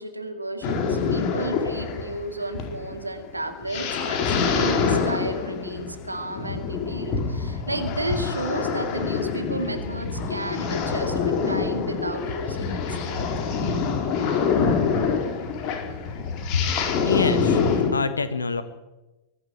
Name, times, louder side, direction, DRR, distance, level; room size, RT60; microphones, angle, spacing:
voice 1, 0.0-13.3, right 1 dB, 85° right, 7 dB, 2.4 m, -33 dB
sound 1, 0.6-17.9, left 5 dB, 40° left, 4.2 m, -26 dB
voice 2, 17.0-18.6, left 5 dB, 75° left, 12 dB, 1.1 m, -26 dB
23.0 x 11.0 x 9.9 m, 1.1 s
figure-of-eight pair, 90°, 0 cm